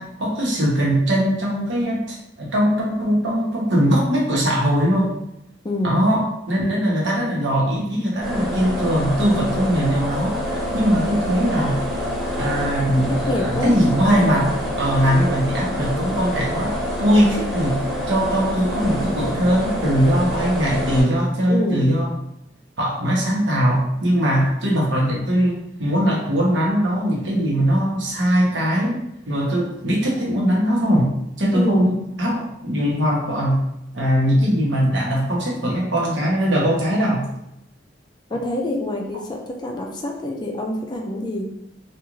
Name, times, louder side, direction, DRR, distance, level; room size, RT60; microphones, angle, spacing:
voice 1, 0.0-5.1 5.8-10.4 10.7-11.8 12.3-14.5 14.8-22.1 22.8-31.1 31.4-33.6 33.9-37.2, equal, 85° right, -4 dB, 1.0 m, -20 dB
voice 2, 5.6-6.0 13.3-13.7 14.2-14.4 21.5-21.9 31.5-31.9 38.3-41.4, left 1 dB, 25° left, 1 dB, 0.4 m, -26 dB
sound 1, 8.2-21.0, equal, ahead, 0.9 m, -27 dB
2.4 x 2.4 x 3.0 m, 0.83 s
head